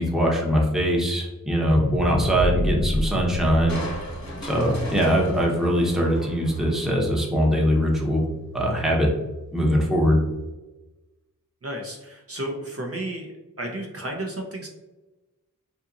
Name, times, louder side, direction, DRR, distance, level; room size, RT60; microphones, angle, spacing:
voice 1, 0.0-3.8 4.4-8.3 8.5-9.1 9.5-10.2, equal, ahead, -2 dB, 0.7 m, -22 dB
sound 1, 1.6-5.9 6.4-6.5, equal, 40° left, 0.4 m, -29 dB
sound 2, 3.2-9.5, right 5 dB, 85° right, 0.8 m, -41 dB
Crushing, 3.7-7.1 7.5-7.6, left 1 dB, 60° left, 0.8 m, -38 dB
voice 2, 11.6-13.3 13.6-14.7, right 1 dB, 45° right, 0 dB, 0.6 m, -32 dB
2.8 x 2.6 x 2.4 m, 1.1 s
cardioid pair, 45°, 32 cm